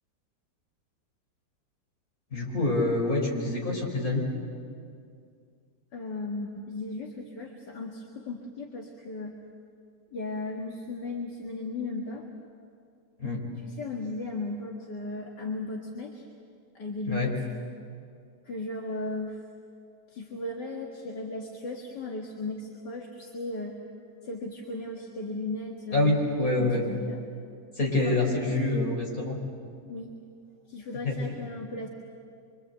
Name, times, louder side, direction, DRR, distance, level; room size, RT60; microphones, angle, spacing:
voice 1, 2.3-4.3 13.2-13.4 17.1-17.3 25.9-26.8 27.8-29.4 31.0-31.3, left 2 dB, 50° left, 0 dB, 5.4 m, -26 dB
voice 2, 5.9-9.4 10.1-12.3 13.6-16.2 16.7-17.4 18.5-19.4 20.1-23.9 24.2-27.2 28.0-28.6 29.9-30.1 30.7-31.9, left 2 dB, 75° left, 0 dB, 2.5 m, -36 dB
25.5 x 25.0 x 8.0 m, 2.3 s
omnidirectional pair, 1.9 m